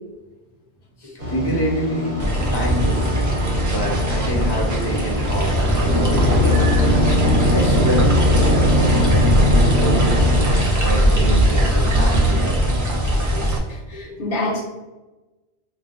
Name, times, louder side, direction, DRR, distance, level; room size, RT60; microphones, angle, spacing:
voice 1, 1.0-2.2 2.5-3.2 3.7-6.9 7.5-10.4 10.8-12.8 13.3-13.4 13.9-14.2, equal, 25° left, -3 dB, 0.7 m, -27 dB
sound 1, 1.2-10.6, left 1 dB, 50° right, 1.0 m, -21 dB
sound 2, 2.2-13.6, right 1 dB, 30° right, 0.4 m, -19 dB
voice 2, 13.7-14.6, left 2 dB, 60° left, -3 dB, 1.1 m, -26 dB
4.0 x 2.5 x 2.4 m, 1.1 s
omnidirectional pair, 1.1 m